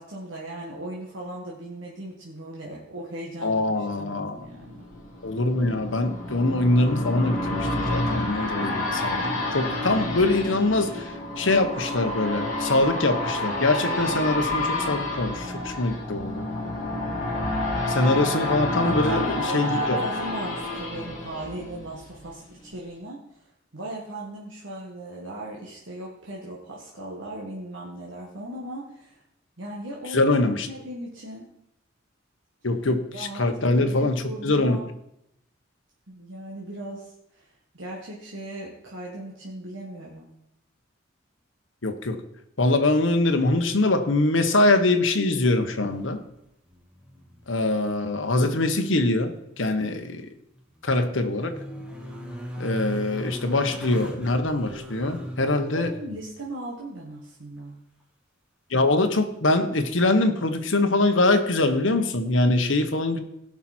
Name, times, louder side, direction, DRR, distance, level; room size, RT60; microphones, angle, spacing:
voice 1, 0.0-4.9 18.7-23.2 23.7-29.2 29.6-30.4 30.7-31.5 33.1-34.9 36.1-37.1 37.4-37.5 37.7-40.3 55.4-57.8, right 1 dB, 70° right, -4 dB, 1.8 m, -37 dB
voice 2, 3.4-4.4 5.2-11.1 11.4-16.4 17.9-20.0 30.1-30.7 32.6-34.8 41.8-42.2 42.6-46.2 47.5-50.3 50.8-51.5 52.6-55.9 58.7-63.2, left 2 dB, 70° left, 7 dB, 1.2 m, -23 dB
sound 1, 4.5-22.3 22.7-22.8, left 1 dB, 40° left, 3.4 m, -29 dB
sound 2, 45.5-46.4 46.7-47.5 47.8-47.9 50.4-56.2 59.1-59.2, equal, 5° right, 1.5 m, -38 dB
17.0 x 6.0 x 4.4 m, 0.80 s
head